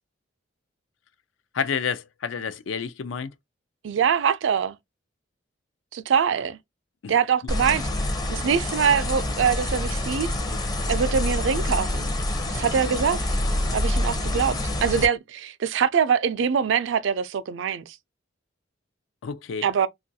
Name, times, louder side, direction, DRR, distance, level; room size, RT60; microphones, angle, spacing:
voice 1, 1.5-3.3 7.0-7.1 7.4-7.5 19.2-19.7, left 6 dB, 75° left, 0.4 m, -29 dB
voice 2, 3.8-4.8 5.9-6.6 7.1-7.8 8.3-10.3 10.9-12.1 12.5-13.2 13.7-18.0 19.6-19.9, right 7 dB, 70° right, 0.4 m, -23 dB
sound 1, 7.5-15.1, left 1 dB, 20° left, 0.6 m, -26 dB
2.9 x 2.4 x 2.6 m
head